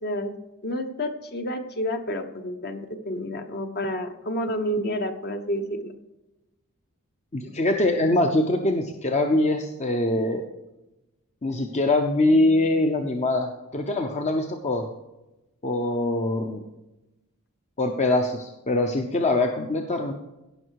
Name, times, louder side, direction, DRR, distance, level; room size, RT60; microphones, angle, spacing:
voice 1, 0.0-0.3 0.6-5.9, equal, 45° left, 6 dB, 1.1 m, -29 dB
voice 2, 7.3-10.4 11.4-14.9 15.6-16.6 17.8-20.1, left 2 dB, 30° left, 4 dB, 0.8 m, -23 dB
16.5 x 5.8 x 4.7 m, 0.98 s
head